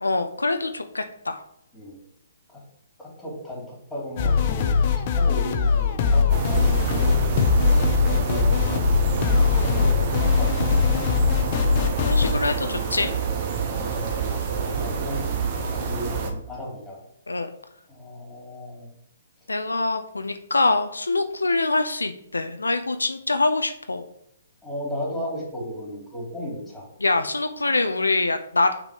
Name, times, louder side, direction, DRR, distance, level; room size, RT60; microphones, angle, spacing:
voice 1, 0.0-1.4 12.0-13.1 17.3-17.5 19.5-24.0 27.0-28.8, left 3 dB, 85° left, 8 dB, 0.5 m, -24 dB
voice 2, 3.0-7.4 8.2-10.7 13.9-17.0 17.9-18.9 24.6-26.8, left 1 dB, 5° left, -4 dB, 2.7 m, -35 dB
sound 1, 4.2-12.3, left 5 dB, 40° left, 0.7 m, -21 dB
sound 2, 6.3-16.3, right 6 dB, 40° right, 0.9 m, -28 dB
6.5 x 3.7 x 5.0 m, 0.74 s
figure-of-eight pair, 130°, 0 cm